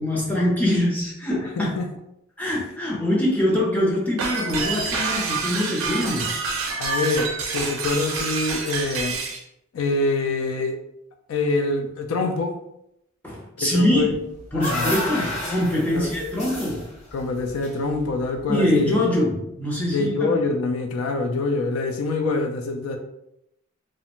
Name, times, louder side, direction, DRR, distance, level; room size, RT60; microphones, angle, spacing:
voice 1, 0.0-1.7 2.4-6.4 13.2-14.2 14.5-16.9 18.5-20.4, left 1 dB, 10° left, -4 dB, 0.5 m, -23 dB
voice 2, 1.4-1.9 6.8-9.2 9.7-10.8 11.3-12.6 13.6-14.1 14.5-15.0 15.9-16.1 17.1-19.3 19.9-23.0, left 3 dB, 80° left, 4 dB, 0.4 m, -25 dB
sound 1, 4.2-9.4, right 4 dB, 80° right, 0.5 m, -27 dB
sound 2, 14.1-18.4, left 1 dB, 30° left, 0.8 m, -31 dB
2.4 x 2.1 x 2.9 m, 0.80 s
head